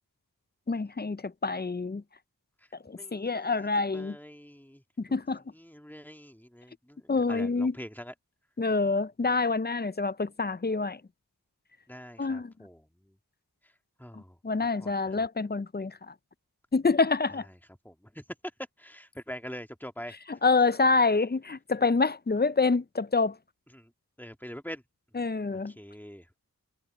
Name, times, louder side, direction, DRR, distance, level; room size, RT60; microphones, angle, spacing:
voice 1, 0.7-2.0 2.9-4.2 5.0-5.4 7.1-7.7 8.6-11.0 12.2-12.5 14.4-16.1 16.7-17.5 20.4-23.4 25.2-25.7, left 4 dB, 25° left, 0.5 m, -27 dB
voice 2, 3.0-3.7 3.9-4.8 5.5-8.1 11.9-13.2 13.6-13.7 14.0-14.4 14.8-15.3 17.3-17.6 17.8-18.2 18.8-20.2 23.7-23.9 24.2-24.8 25.7-26.3, equal, 5° left, 1.8 m, -44 dB
wide cardioid pair, 50°, 38 cm